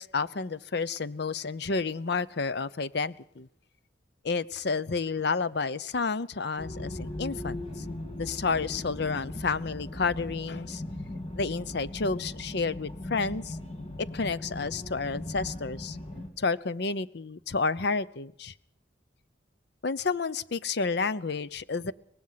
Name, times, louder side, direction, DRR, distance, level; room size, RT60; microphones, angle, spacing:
voice 1, 0.0-3.5 4.2-7.9 8.2-10.8 11.3-13.6 14.0-16.0 16.4-18.5 19.8-21.9, left 4 dB, 65° left, 16 dB, 0.7 m, -30 dB
sound 1, 6.6-16.3, left 1 dB, 35° left, 2.9 m, -38 dB
24.0 x 19.0 x 5.8 m, 0.74 s
head